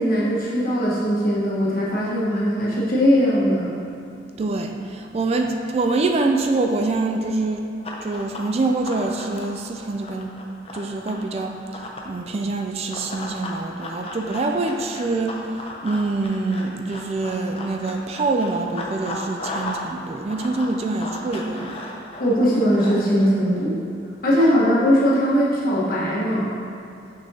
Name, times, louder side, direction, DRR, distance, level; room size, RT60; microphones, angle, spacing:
voice 1, 0.0-3.7 22.2-23.8 24.2-26.5, equal, 55° left, -6 dB, 1.4 m, -20 dB
voice 2, 4.4-7.7 8.0-10.4 10.7-15.4 15.8-21.8, right 3 dB, 35° right, 3 dB, 0.3 m, -25 dB
Run, 7.8-12.1 12.9-19.9 20.1-23.3, left 2 dB, 35° left, 0.6 m, -35 dB
6.3 x 6.2 x 2.8 m, 2.6 s
head